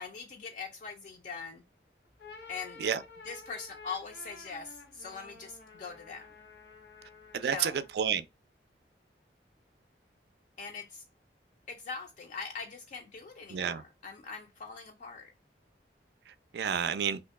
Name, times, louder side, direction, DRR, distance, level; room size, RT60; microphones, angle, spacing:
voice 1, 0.0-1.6 2.5-2.8 3.2-6.3 7.4-7.8 10.6-11.0 11.7-15.3, left 5 dB, 45° left, 0.4 m, -42 dB
sound 1, 2.0-8.1, left 4 dB, 85° left, 1.1 m, -51 dB
voice 2, 7.3-8.2 13.5-13.8 16.5-17.2, right 7 dB, 70° right, 0.3 m, -30 dB
2.9 x 2.6 x 3.4 m
head